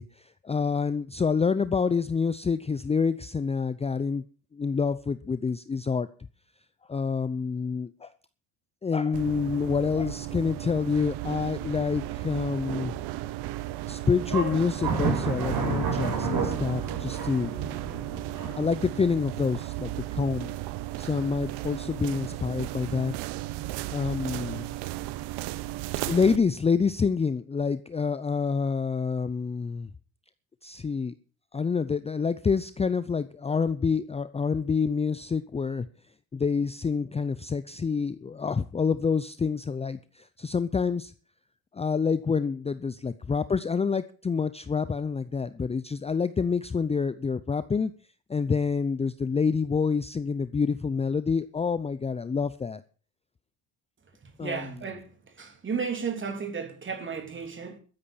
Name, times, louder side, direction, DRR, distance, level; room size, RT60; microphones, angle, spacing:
voice 1, 0.0-4.2 4.5-6.1 6.9-8.1 8.8-12.9 13.9-17.5 18.6-20.5 21.0-23.2 23.9-24.7 26.1-29.9 30.6-31.1 31.5-35.9 36.3-41.1 41.7-47.9 48.3-52.8 54.4-54.7, left 5 dB, 15° left, 0.6 m, -27 dB
sound 1, 9.1-26.4, right 16 dB, 75° right, 1.1 m, -35 dB
sound 2, 13.5-13.8 14.2-18.6, right 5 dB, 55° right, 6.7 m, -30 dB
voice 2, 54.2-55.1 55.4-57.8, right 5 dB, 30° right, 3.3 m, -33 dB
13.0 x 9.7 x 7.2 m
cardioid pair, 105°, 40 cm